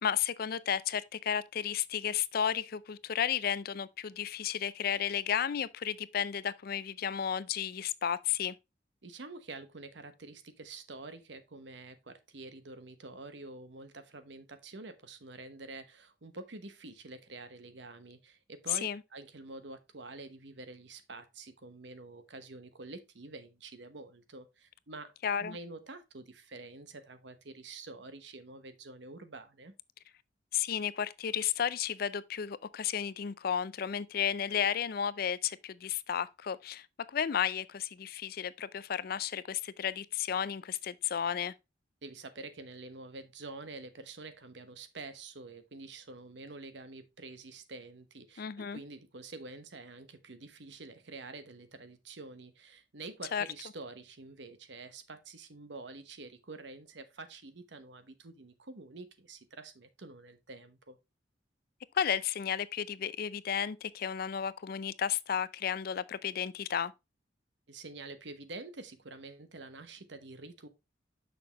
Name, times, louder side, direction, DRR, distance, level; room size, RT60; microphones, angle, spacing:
voice 1, 0.0-8.5 18.7-19.0 25.2-25.6 30.5-41.5 48.4-48.8 53.3-53.4 61.9-66.9, left 8 dB, 50° left, 0.4 m, -33 dB
voice 2, 9.0-25.1 25.4-29.7 42.0-61.0 67.7-70.7, right 3 dB, 65° right, 1.0 m, -47 dB
6.8 x 6.0 x 2.9 m
head